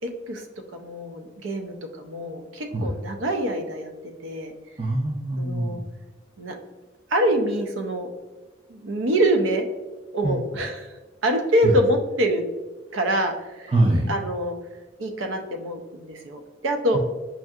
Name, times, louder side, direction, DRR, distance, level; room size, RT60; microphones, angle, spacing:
voice 1, 0.0-0.4 0.7-3.9 4.2-4.5 5.4-5.8 6.4-6.6 7.1-8.1 8.7-9.7 10.1-10.9 11.2-12.4 12.9-13.7 14.1-14.5 15.0-17.0, right 1 dB, 85° right, 5 dB, 0.5 m, -25 dB
voice 2, 4.8-5.8 10.2-10.4 11.6-11.7 13.7-14.1 16.9-17.0, right 1 dB, 30° right, -3 dB, 0.4 m, -23 dB
5.4 x 2.7 x 2.4 m, 1.2 s
head